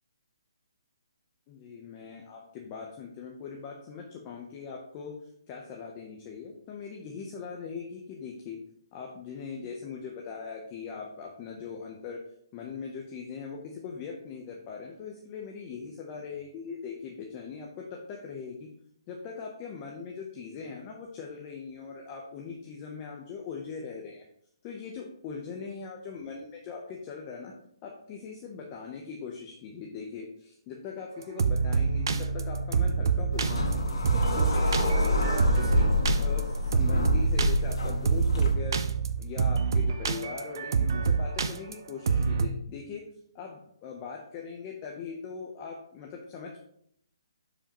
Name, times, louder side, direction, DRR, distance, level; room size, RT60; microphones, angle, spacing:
voice 1, 1.5-8.6 8.9-12.2 12.5-18.7 19.1-24.3 24.6-27.5 27.8-33.8 34.1-35.9 36.2-38.9 39.2-43.1 43.3-46.6, left 5 dB, 20° left, 0 dB, 0.7 m, -40 dB
sound 1, 31.2-42.5, right 5 dB, 50° right, 0.6 m, -27 dB
sound 2, 33.3-38.5, left 2 dB, 85° left, 1.7 m, -27 dB
10.0 x 5.0 x 2.9 m, 0.70 s
hypercardioid pair, 170°, 3 cm